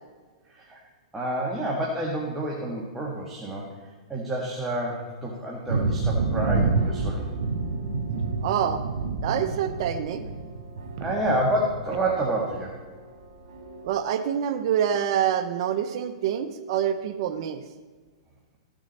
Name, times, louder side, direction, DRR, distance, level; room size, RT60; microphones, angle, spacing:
voice 1, 1.1-3.7 4.1-7.3 11.0-12.8, right 1 dB, 5° right, -4 dB, 1.6 m, -28 dB
sound 1, 5.7-13.9, right 3 dB, 80° right, 2.0 m, -29 dB
voice 2, 8.4-8.8 9.2-10.2 11.0-11.1 13.8-17.6, right 9 dB, 55° right, 9 dB, 0.7 m, -26 dB
15.0 x 6.4 x 4.2 m, 1.4 s
hypercardioid pair, 140°, 3 cm